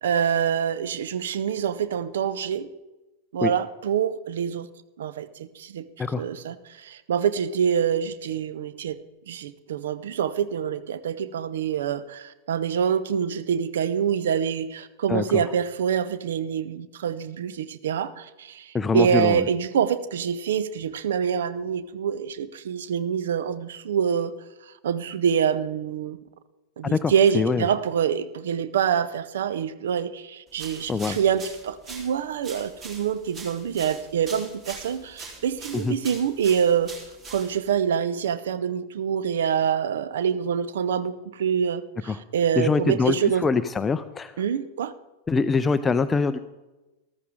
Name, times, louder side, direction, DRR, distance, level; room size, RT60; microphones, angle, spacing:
voice 1, 0.0-2.7 3.3-4.7 5.0-5.9 6.2-9.0 9.3-24.3 24.8-26.2 26.8-36.9 37.3-43.4 44.4-44.9, right 8 dB, 60° right, 15 dB, 0.6 m, -26 dB
voice 2, 18.7-19.4 26.9-27.6 30.9-31.2 35.7-35.9 42.1-42.2 42.6-44.4 45.3-46.4, left 4 dB, 15° left, 11 dB, 0.4 m, -24 dB
sound 1, 30.5-37.8, right 3 dB, 30° right, 3.5 m, -42 dB
14.0 x 13.5 x 3.7 m, 1.1 s
figure-of-eight pair, 90°, 0 cm